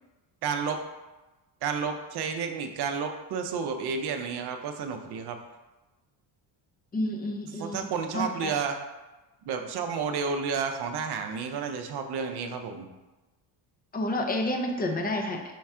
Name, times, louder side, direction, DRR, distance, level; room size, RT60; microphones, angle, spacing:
voice 1, 0.4-0.8 1.6-5.4 7.6-8.7 9.4-12.9, right 6 dB, 55° right, 5 dB, 0.6 m, -31 dB
voice 2, 6.9-7.9 8.1-8.5 13.9-15.5, left 1 dB, 20° left, 3 dB, 0.5 m, -30 dB
4.5 x 2.4 x 4.3 m, 1.1 s
cardioid pair, 105°, 47 cm